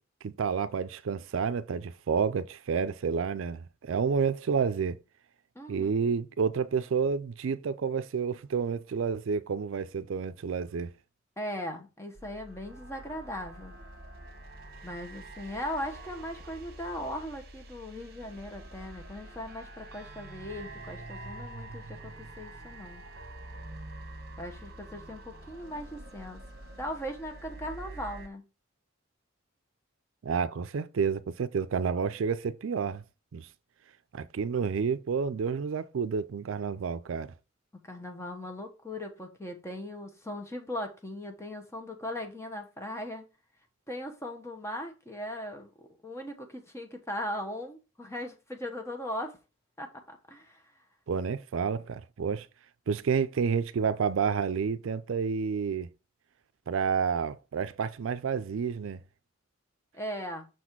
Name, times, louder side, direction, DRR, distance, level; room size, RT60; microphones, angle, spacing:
voice 1, 0.2-5.0 5.7-10.9 30.2-33.0 33.3-33.5 34.1-37.3 51.1-52.5 52.9-55.9 56.7-59.0, right 6 dB, 80° right, 0.4 m, -30 dB
voice 2, 5.5-6.0 11.4-13.7 14.8-23.0 24.4-26.4 26.8-28.4 37.8-43.3 43.9-49.4 49.8-50.6 59.9-60.5, left 1 dB, 15° left, 1.0 m, -39 dB
sound 1, 12.1-28.3, right 2 dB, 50° right, 1.1 m, -46 dB
6.3 x 4.2 x 4.5 m
head